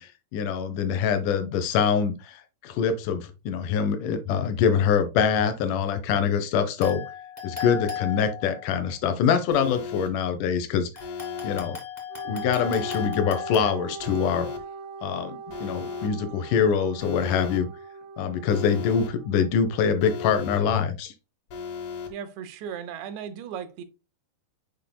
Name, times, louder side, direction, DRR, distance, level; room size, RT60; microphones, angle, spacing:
voice 1, 0.0-7.0 7.4-10.9 11.4-11.8 12.3-14.5 15.0-17.7 18.2-21.1, left 7 dB, 80° left, 1.8 m, -24 dB
sound 1, 6.8-8.8 10.9-13.7, left 8 dB, 25° left, 0.9 m, -35 dB
Alarm, 9.5-10.1 11.0-11.6 12.5-13.1 14.0-14.6 15.5-16.1 17.0-17.6 18.5-19.1 20.0-20.6 21.5-22.1, left 6 dB, 60° left, 2.6 m, -35 dB
Wind instrument woodwind instrument, 12.1-19.8, right 5 dB, 75° right, 1.9 m, -41 dB
voice 2, 22.1-23.8, right 8 dB, 90° right, 3.2 m, -36 dB
8.1 x 5.1 x 2.2 m
omnidirectional pair, 4.8 m